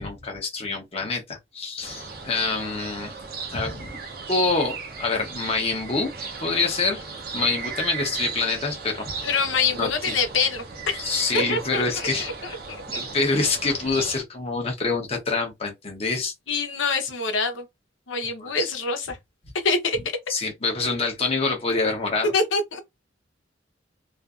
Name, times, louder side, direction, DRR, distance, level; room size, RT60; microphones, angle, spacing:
voice 1, 0.0-3.1 3.5-6.1 6.4-7.0 7.3-9.3 9.7-10.1 11.0-12.3 12.9-16.3 18.4-18.7 20.3-22.3, left 3 dB, 30° left, 0.7 m, -26 dB
sound 1, 1.8-14.2, right 4 dB, 50° right, 0.7 m, -36 dB
voice 2, 9.2-11.0 11.3-12.5 12.9-13.0 16.5-17.7 18.1-19.2 19.6-20.0 22.3-22.8, left 4 dB, 90° left, 0.8 m, -25 dB
2.5 x 2.5 x 2.3 m
head